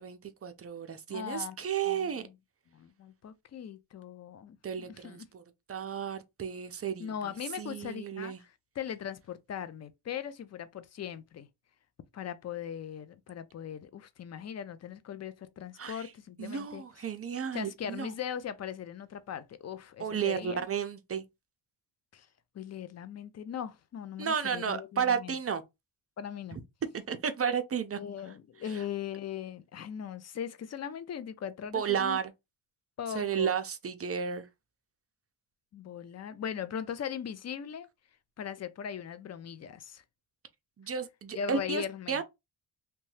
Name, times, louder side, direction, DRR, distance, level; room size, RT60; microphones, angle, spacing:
voice 1, 0.0-2.3 4.6-5.4 5.7-7.1 7.6-8.4 15.8-16.1 16.4-18.1 20.0-21.2 24.2-25.6 26.9-28.0 31.7-32.2 33.1-34.5 40.8-42.2, right 7 dB, 30° right, 0.5 m, -33 dB
voice 2, 1.1-1.6 1.8-2.3 2.7-5.3 7.0-11.5 12.1-16.8 17.5-20.7 22.1-22.3 22.5-25.4 26.2-26.6 27.9-32.2 33.0-33.5 35.7-37.9 38.4-40.0 41.3-42.2, left 8 dB, 35° left, 0.4 m, -39 dB
2.7 x 2.2 x 3.2 m
cardioid pair, 85°, 48 cm